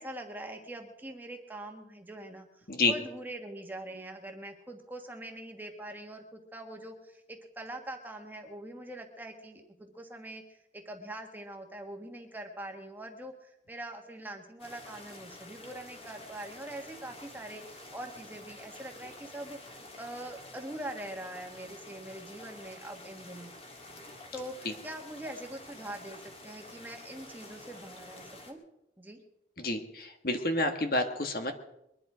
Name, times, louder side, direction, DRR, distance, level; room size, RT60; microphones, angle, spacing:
voice 1, 0.0-23.5 24.3-28.6 29.0-29.2, right 1 dB, 10° right, 3 dB, 1.5 m, -43 dB
sound 1, 14.6-28.5, left 1 dB, 30° left, 2.1 m, -49 dB
voice 2, 29.6-31.5, left 2 dB, 50° left, 6 dB, 1.5 m, -29 dB
22.5 x 11.0 x 5.0 m, 0.82 s
head